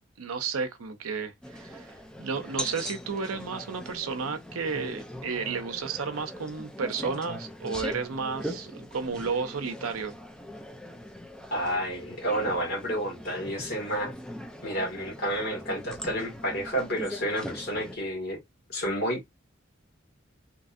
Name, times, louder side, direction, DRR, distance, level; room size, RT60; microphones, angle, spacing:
voice 1, 0.2-10.2, right 5 dB, 90° right, 0.6 m, -32 dB
sound 1, 1.4-18.0, equal, 5° left, 0.4 m, -41 dB
voice 2, 11.5-14.1 14.6-18.4 18.7-19.3, equal, 50° left, 1.5 m, -30 dB
2.9 x 2.6 x 2.4 m
head